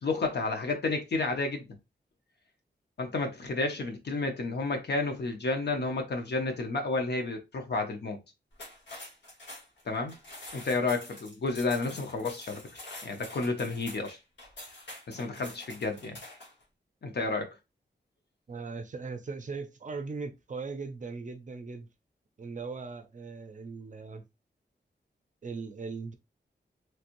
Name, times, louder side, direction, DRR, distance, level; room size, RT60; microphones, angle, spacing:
voice 1, 0.0-1.8 3.0-8.2 9.9-10.1 10.5-12.6 13.0-14.2 15.1-16.2 17.0-17.6, left 3 dB, 70° left, 0.8 m, -31 dB
sound 1, 8.5-16.6, left 1 dB, 85° left, 1.2 m, -46 dB
voice 2, 18.5-21.9 22.4-24.2 25.4-26.1, right 4 dB, 45° right, 0.5 m, -39 dB
3.2 x 2.9 x 2.5 m
wide cardioid pair, 140°, 18 cm